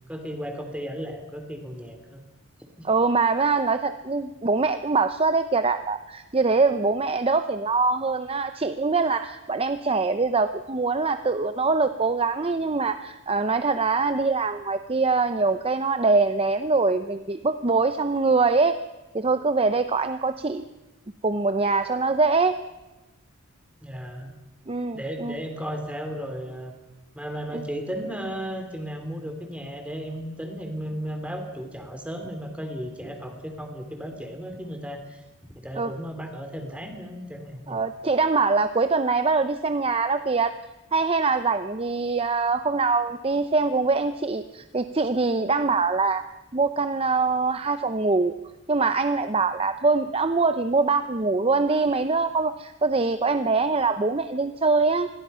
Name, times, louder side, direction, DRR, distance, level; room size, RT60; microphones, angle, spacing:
voice 1, 0.1-2.2 2.8-2.9 23.8-24.4 24.9-26.7 27.1-35.2 35.5-37.8, equal, 5° right, 5 dB, 3.2 m, -35 dB
voice 2, 2.8-18.8 19.1-20.7 21.2-22.6 24.7-25.4 27.5-27.6 35.8-35.9 37.7-40.5 40.9-46.2 46.5-48.3 48.7-55.1, right 4 dB, 25° right, 10 dB, 0.7 m, -23 dB
27.5 x 22.0 x 5.7 m, 1.1 s
head